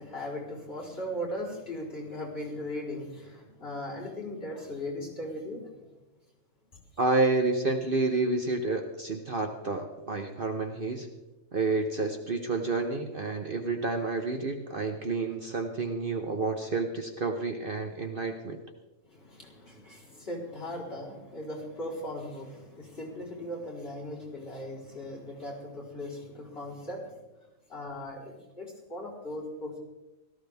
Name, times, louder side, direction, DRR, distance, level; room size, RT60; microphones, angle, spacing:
voice 1, 0.0-5.9 6.7-6.8 19.0-27.2 27.7-29.8, left 1 dB, 45° left, -5 dB, 4.4 m, -38 dB
voice 2, 7.0-11.1 11.5-18.6, right 3 dB, 45° right, 5 dB, 1.0 m, -29 dB
17.5 x 14.0 x 3.5 m, 1.0 s
omnidirectional pair, 1.4 m